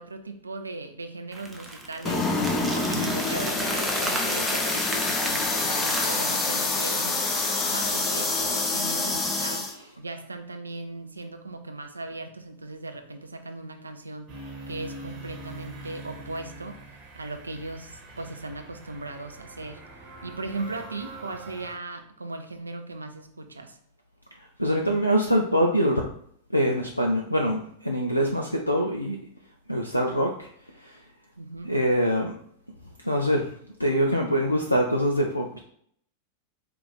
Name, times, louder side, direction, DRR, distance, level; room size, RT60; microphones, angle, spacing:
voice 1, 0.0-2.3 2.7-7.3 7.6-14.3 14.7-19.8 20.2-23.8 31.4-31.7, right 2 dB, 80° right, 6 dB, 0.5 m, -38 dB
sound 1, 1.3-6.3, right 2 dB, 10° right, 0.8 m, -34 dB
sound 2, 2.0-9.7, left 3 dB, 20° left, 0.8 m, -26 dB
sound 3, 14.3-21.8, right 2 dB, 35° right, 1.0 m, -43 dB
voice 2, 24.6-26.1 26.5-29.2 29.7-30.5 30.8-30.9 31.7-32.4 33.0-33.5 33.8-35.6, equal, 85° left, 1 dB, 0.4 m, -24 dB
4.6 x 2.5 x 4.0 m, 0.64 s
figure-of-eight pair, 90°, 0 cm